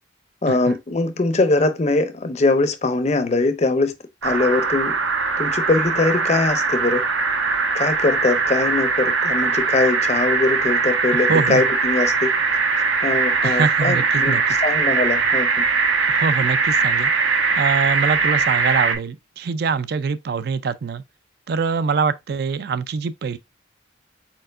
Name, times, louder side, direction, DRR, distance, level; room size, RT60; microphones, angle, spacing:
voice 1, 0.4-3.9 4.2-5.0 5.4-7.0 7.7-12.3 13.0-15.6, left 3 dB, 35° left, 0.5 m, -21 dB
sound 1, 4.2-19.0, right 4 dB, 80° right, 1.0 m, -21 dB
voice 2, 11.1-11.6 13.4-14.4 16.1-17.1 17.6-21.0 21.5-23.4, right 5 dB, 50° right, 0.3 m, -24 dB
4.5 x 4.2 x 2.5 m
head